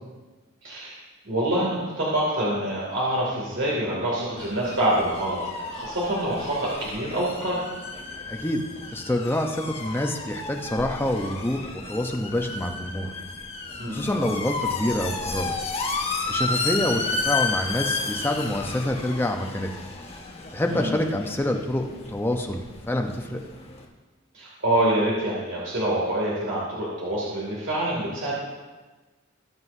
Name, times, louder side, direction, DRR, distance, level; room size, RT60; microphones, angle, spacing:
voice 1, 0.6-1.0 1.2-7.6 13.8-14.2 20.7-21.0 24.3-28.3, right 1 dB, 60° right, -6 dB, 2.5 m, -26 dB
sound 1, 4.4-23.9, left 3 dB, 30° left, 1.3 m, -32 dB
voice 2, 8.3-8.6 8.9-13.1 13.9-15.5 16.3-19.7 20.5-23.4, left 1 dB, 10° left, 3 dB, 0.8 m, -27 dB
19.0 x 7.8 x 2.7 m, 1.2 s
head